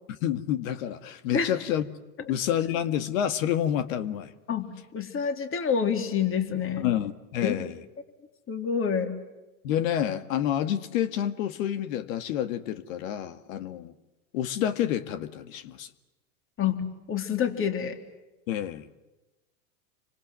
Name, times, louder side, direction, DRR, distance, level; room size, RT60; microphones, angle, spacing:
voice 1, 0.1-1.9 2.3-4.3 6.8-7.7 9.6-13.9 14.3-15.9 18.5-18.9, left 10 dB, 65° left, 11 dB, 2.0 m, -28 dB
voice 2, 4.5-6.9 7.4-7.6 8.5-9.1 16.6-18.0, left 7 dB, 30° left, 6 dB, 3.6 m, -27 dB
29.0 x 25.0 x 7.8 m, 1.1 s
hypercardioid pair, 105°, 43 cm